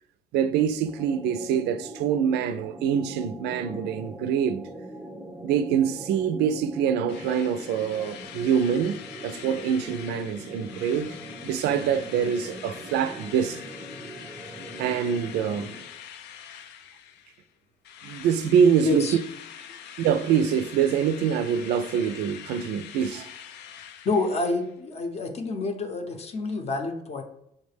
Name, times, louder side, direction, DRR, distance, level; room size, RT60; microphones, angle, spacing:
voice 1, 0.3-4.7 5.4-11.2 11.4-13.6 14.8-15.7 18.0-19.2 20.0-23.3, right 8 dB, 80° right, 0.4 m, -25 dB
sound 1, 0.9-16.0, right 1 dB, 5° right, 0.5 m, -42 dB
Drill, 7.1-17.5 17.8-24.7, left 9 dB, 80° left, 0.4 m, -44 dB
voice 2, 18.8-19.2 24.0-27.2, left 3 dB, 40° left, 0.7 m, -28 dB
5.4 x 2.1 x 3.3 m
cardioid pair, 110°, 17 cm